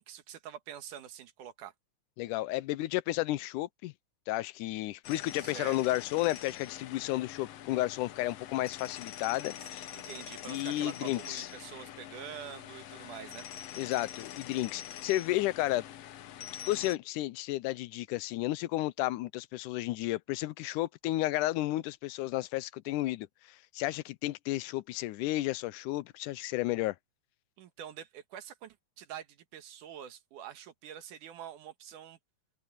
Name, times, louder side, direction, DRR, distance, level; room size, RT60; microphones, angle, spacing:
voice 1, 0.0-1.7 5.4-6.0 9.9-13.5 27.6-32.2, right 9 dB, 85° right, 2.9 m, -46 dB
voice 2, 2.2-3.9 4.3-9.9 10.5-11.5 13.8-15.8 16.7-27.0, left 16 dB, 90° left, 2.2 m, -32 dB
sound 1, 5.0-17.0, left 11 dB, 65° left, 1.8 m, -45 dB
open air
omnidirectional pair, 3.5 m